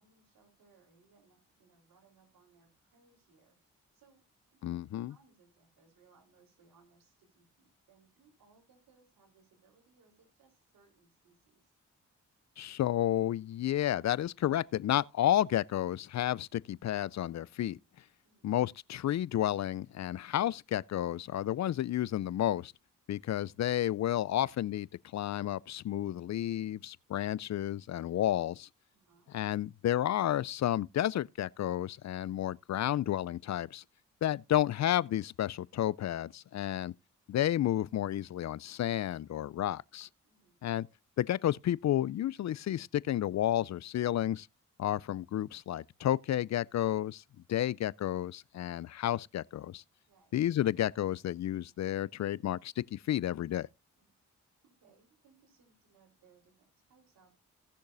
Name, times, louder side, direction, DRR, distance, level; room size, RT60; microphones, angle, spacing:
voice 1, 0.0-4.2 4.5-11.7 18.2-18.5 28.9-29.3 40.2-40.7 50.1-50.4 54.0-54.1 54.6-57.4, right 5 dB, 80° right, 3.9 m, -67 dB
voice 2, 4.6-5.1 12.6-17.8 18.4-22.7 23.1-24.9 25.1-28.7 29.3-33.8 34.2-36.9 37.3-40.1 40.6-40.9 41.2-44.5 44.8-47.2 47.5-49.8 50.3-53.7, left 12 dB, 55° left, 0.4 m, -31 dB
18.0 x 6.5 x 2.6 m
supercardioid pair, 45°, 33 cm